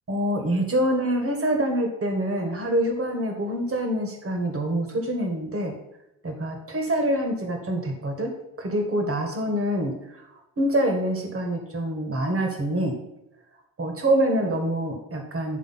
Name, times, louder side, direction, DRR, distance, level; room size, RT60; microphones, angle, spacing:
voice 1, 0.1-5.7 6.2-10.0 10.6-13.0 13.8-15.6, right 1 dB, 45° right, 3 dB, 1.8 m, -25 dB
9.9 x 3.4 x 5.8 m, 0.88 s
cardioid pair, 70°, 32 cm